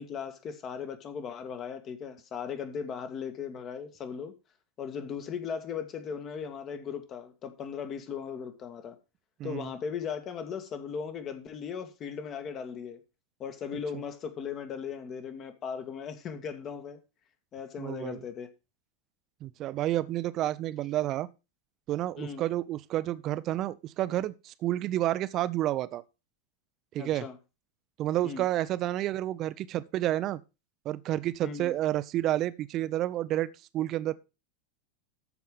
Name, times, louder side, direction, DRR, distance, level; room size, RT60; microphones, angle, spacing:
voice 1, 0.0-4.3 4.8-9.0 9.4-13.0 13.4-17.0 17.5-18.5 22.2-22.5 27.0-27.4 28.2-28.5 31.4-31.7, left 6 dB, 35° left, 1.8 m, -37 dB
voice 2, 9.4-9.7 17.8-18.2 19.4-21.3 21.9-26.0 26.9-27.3 28.0-30.4 30.8-34.1, right 14 dB, 40° right, 0.7 m, -30 dB
13.5 x 4.8 x 5.4 m
figure-of-eight pair, 90°, 0 cm